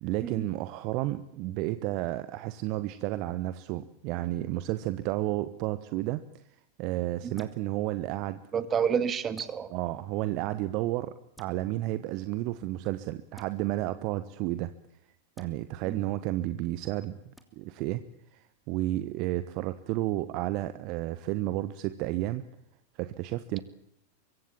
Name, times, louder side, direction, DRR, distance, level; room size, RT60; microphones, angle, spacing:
voice 1, 0.0-6.4 6.8-8.4 9.7-14.7 15.4-18.0 18.3-22.4 23.0-23.6, right 16 dB, 40° right, 13 dB, 1.1 m, -32 dB
sound 1, 7.4-7.6 9.3-9.6 11.3-11.5 13.3-13.5 15.3-15.5 17.4-17.5, left 1 dB, 5° left, 3.0 m, -52 dB
voice 2, 8.5-9.7 15.9-16.0, right 7 dB, 25° right, 12 dB, 2.2 m, -29 dB
24.5 x 24.0 x 7.4 m, 0.76 s
figure-of-eight pair, 90°, 0 cm